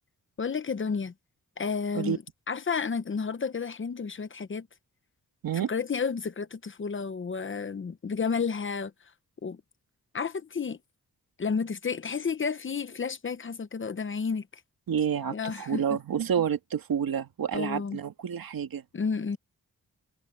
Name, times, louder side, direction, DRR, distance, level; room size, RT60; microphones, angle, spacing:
voice 1, 0.4-1.1 1.6-2.2 2.5-4.7 5.5-8.9 9.4-9.6 10.1-10.8 11.4-14.5 15.3-16.0 17.5-18.0 18.9-19.4, left 5 dB, 35° left, 0.8 m, -31 dB
voice 2, 14.9-18.8, right 8 dB, 85° right, 2.1 m, -29 dB
wide cardioid pair, 175°, 34 cm